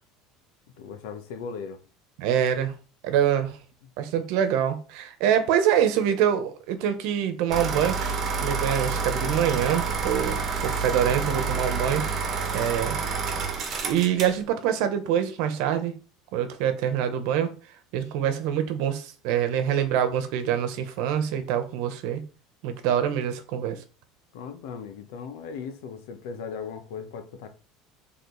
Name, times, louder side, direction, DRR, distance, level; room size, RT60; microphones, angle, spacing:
voice 1, 0.8-1.8 3.8-3.9 24.3-27.5, left 6 dB, 75° left, 1.2 m, -37 dB
voice 2, 2.2-2.7 3.0-3.6 4.0-13.0 13.8-16.0 16.3-17.5 17.9-22.2 22.6-23.8, right 9 dB, 60° right, 1.1 m, -25 dB
sound 1, 7.5-14.4, right 5 dB, 30° right, 1.4 m, -28 dB
6.8 x 3.7 x 4.1 m
cardioid pair, 160°, 0 cm